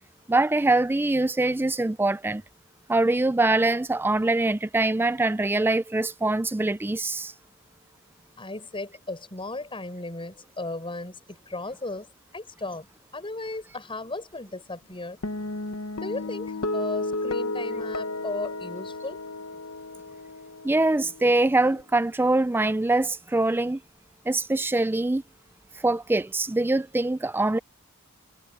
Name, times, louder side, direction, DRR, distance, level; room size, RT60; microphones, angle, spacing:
voice 1, 0.3-2.4 2.9-7.3 20.6-23.8 24.3-25.2 25.7-27.6, right 2 dB, 10° right, 0.4 m, -23 dB
voice 2, 8.4-12.1 12.3-12.9 13.1-15.2 16.0-19.2, left 2 dB, 25° left, 6.2 m, -35 dB
sound 1, 15.2-21.8, left 2 dB, 65° left, 1.0 m, -33 dB
head